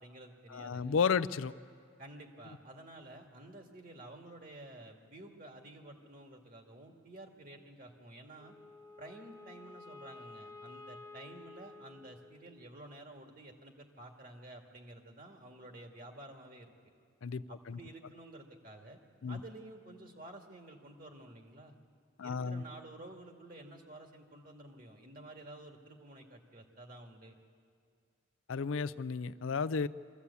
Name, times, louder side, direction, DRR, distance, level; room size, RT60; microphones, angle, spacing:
voice 1, 0.0-1.0 2.0-8.5 9.0-16.7 17.5-19.0 19.3-21.8 22.2-27.4, right 1 dB, 45° right, 3 dB, 2.0 m, -51 dB
voice 2, 0.5-1.5 17.2-17.8 19.2-19.4 22.2-22.6 28.5-29.9, left 5 dB, 80° left, 16 dB, 0.5 m, -33 dB
Wind instrument woodwind instrument, 8.4-12.8, left 3 dB, 15° left, 1.0 m, -52 dB
23.5 x 14.5 x 8.4 m, 2.1 s
head